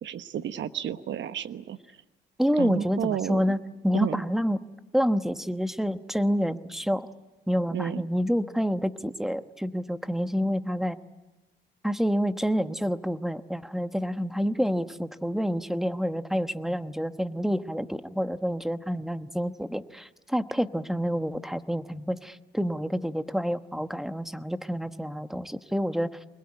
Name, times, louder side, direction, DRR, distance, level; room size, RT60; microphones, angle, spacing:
voice 1, 0.0-1.8 2.6-3.4 4.0-4.2 7.7-8.0, right 10 dB, 65° right, 12 dB, 1.2 m, -31 dB
voice 2, 2.4-4.6 4.9-7.1 7.5-11.0 11.8-26.1, equal, ahead, 11 dB, 1.1 m, -28 dB
24.5 x 21.5 x 9.9 m, 1.1 s
cardioid pair, 90°, 20 cm